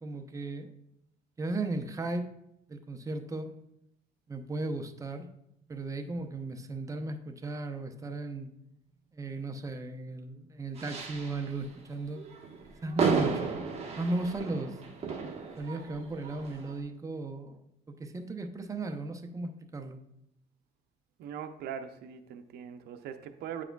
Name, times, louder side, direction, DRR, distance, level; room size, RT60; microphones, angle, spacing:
voice 1, 0.0-0.7 1.4-2.3 2.7-3.5 4.3-5.3 5.7-8.5 9.1-12.2 12.8-13.5 14.0-14.8 15.6-17.6 18.0-20.0, right 2 dB, 20° right, 6 dB, 0.6 m, -36 dB
sound 1, 10.8-11.6 12.2-16.8, right 5 dB, 35° right, 1.1 m, -34 dB
voice 2, 21.2-23.6, right 8 dB, 75° right, 7 dB, 0.6 m, -41 dB
8.7 x 4.8 x 2.2 m, 0.82 s
cardioid pair, 110°, 17 cm